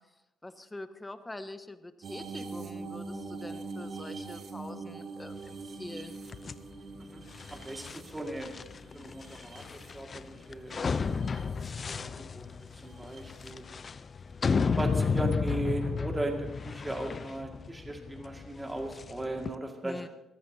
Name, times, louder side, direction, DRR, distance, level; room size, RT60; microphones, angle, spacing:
voice 1, 0.4-6.1 19.8-20.1, left 2 dB, 15° left, 9 dB, 1.1 m, -44 dB
sound 1, 2.0-10.4 10.9-11.7 12.9-13.2 15.0-15.1, right 3 dB, 60° right, 2.1 m, -43 dB
sound 2, 6.3-19.5, left 5 dB, 40° left, 0.6 m, -33 dB
voice 2, 7.5-8.5 8.9-11.0 12.0-13.7 14.8-20.1, right 1 dB, 15° right, 2 dB, 2.1 m, -37 dB
22.0 x 15.5 x 2.8 m, 0.91 s
cardioid pair, 90°, 0 cm